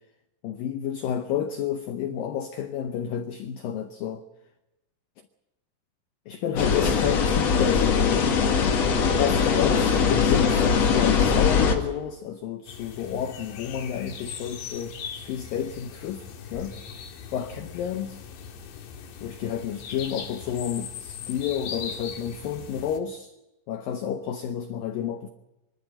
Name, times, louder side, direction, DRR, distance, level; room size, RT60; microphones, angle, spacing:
voice 1, 0.4-4.2 6.3-8.3 9.2-16.2 16.5-16.8 17.3-18.2 19.2-23.3 23.7-25.3, left 9 dB, 90° left, 2.0 m, -30 dB
sound 1, 6.6-11.7, left 6 dB, 50° left, 2.2 m, -21 dB
sound 2, 12.7-23.0, left 7 dB, 70° left, 3.9 m, -40 dB
24.5 x 13.0 x 10.0 m
omnidirectional pair, 5.3 m